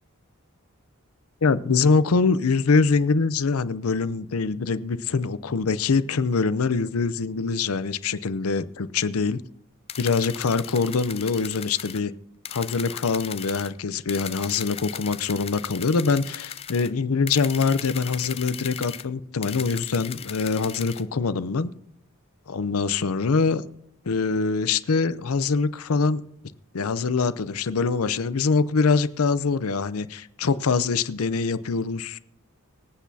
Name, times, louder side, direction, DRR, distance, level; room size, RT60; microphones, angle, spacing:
voice 1, 1.4-9.4 10.0-12.1 12.5-21.7 22.5-23.6 24.1-26.2 26.7-32.2, left 4 dB, 75° left, 0.6 m, -24 dB
sound 1, 9.9-12.0 12.5-13.7 14.1-16.9 17.3-19.0 19.4-21.0, left 9 dB, 25° left, 0.4 m, -37 dB
25.0 x 8.3 x 2.8 m
head